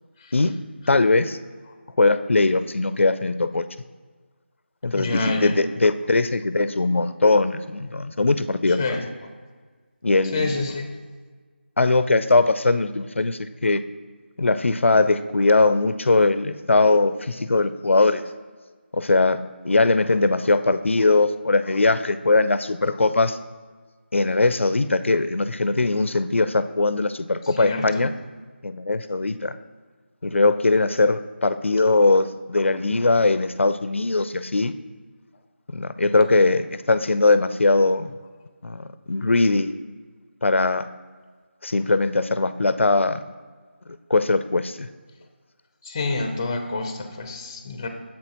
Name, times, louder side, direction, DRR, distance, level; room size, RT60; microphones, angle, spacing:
voice 1, 0.9-1.4 2.0-3.6 4.8-8.8 10.0-10.6 11.8-13.8 14.4-18.2 18.9-19.4 19.6-23.4 24.1-28.1 28.6-29.6 30.2-34.7 35.7-38.1 38.6-39.7 40.4-40.9 41.6-43.2 44.1-44.9, left 3 dB, 90° left, 12 dB, 0.4 m, -20 dB
voice 2, 4.9-5.5 8.7-9.3 10.3-10.9 22.9-23.0 27.4-28.1 45.8-47.9, left 3 dB, 20° left, 6 dB, 0.4 m, -28 dB
7.4 x 6.1 x 2.9 m, 1.5 s
figure-of-eight pair, 165°, 6 cm